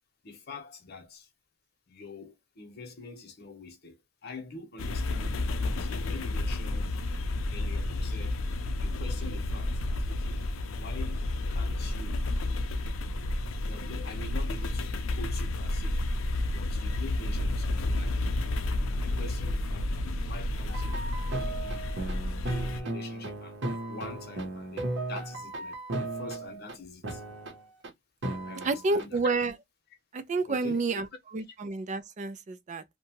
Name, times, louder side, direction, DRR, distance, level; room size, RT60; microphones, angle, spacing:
voice 1, 0.2-1.3 1.9-7.0 7.5-8.4 8.8-10.4 10.8-12.3 13.6-16.0 16.5-18.2 18.8-21.0 21.4-21.9 22.4-23.6 23.9-27.2 28.4-29.3 30.5-31.0 31.5-31.6, left 3 dB, 55° left, 0.8 m, -45 dB
sound 1, 4.8-22.8, left 2 dB, 85° left, 0.5 m, -31 dB
sound 2, 20.7-26.7 27.0-27.9 28.2-29.0, right 2 dB, 60° right, 0.8 m, -36 dB
voice 2, 28.6-29.5 30.1-31.1 31.3-32.8, right 3 dB, 35° right, 0.4 m, -29 dB
2.7 x 2.2 x 2.7 m
head